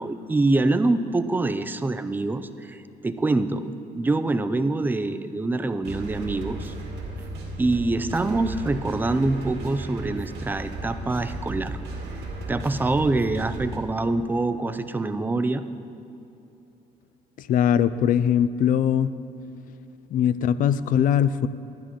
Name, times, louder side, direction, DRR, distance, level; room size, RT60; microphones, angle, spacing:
voice 1, 0.0-6.7 7.6-11.8 12.5-15.6, right 2 dB, 10° right, 10 dB, 0.4 m, -25 dB
sound 1, 5.8-13.8, right 2 dB, 70° right, 1.9 m, -35 dB
voice 2, 17.4-19.1 20.1-21.5, left 9 dB, 55° left, 15 dB, 0.4 m, -21 dB
11.5 x 10.5 x 3.8 m, 2.8 s
cardioid pair, 110°, 17 cm